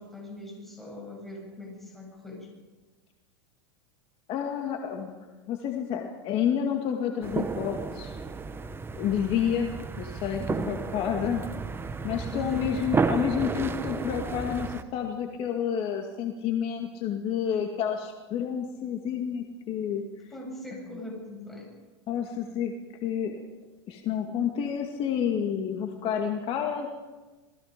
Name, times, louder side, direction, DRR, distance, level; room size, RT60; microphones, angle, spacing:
voice 1, 0.0-2.5 12.3-12.7 20.3-21.7, left 1 dB, ahead, -1 dB, 7.8 m, -41 dB
voice 2, 4.3-5.2 5.5-8.2 9.0-11.5 12.0-20.0 22.1-22.7 23.0-23.4 23.9-26.9, left 8 dB, 40° left, 2 dB, 2.3 m, -29 dB
sound 1, 7.2-14.8, right 4 dB, 15° right, 1.2 m, -32 dB
27.5 x 20.0 x 5.3 m, 1.3 s
supercardioid pair, 120°, 14 cm